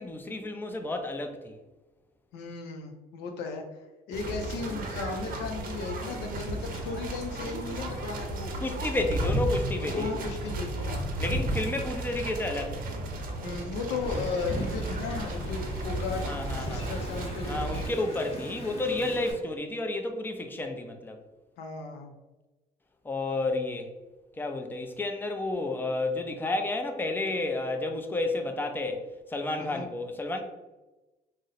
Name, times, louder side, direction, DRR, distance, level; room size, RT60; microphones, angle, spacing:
voice 1, 0.0-1.6 7.6-8.0 8.6-10.1 11.2-12.9 16.3-16.8 17.5-21.2 23.0-23.9 24.4-30.4, left 2 dB, 10° left, 0.4 m, -31 dB
voice 2, 2.3-3.8 4.1-8.5 9.8-11.1 13.4-17.7 21.6-22.1 29.6-29.9, left 4 dB, 90° left, 0.5 m, -36 dB
sound 1, 4.1-17.9, right 1 dB, 55° right, 0.6 m, -34 dB
Wind, 14.0-19.3, equal, 35° left, 0.9 m, -39 dB
2.6 x 2.0 x 4.0 m
cardioid pair, 110°, 17 cm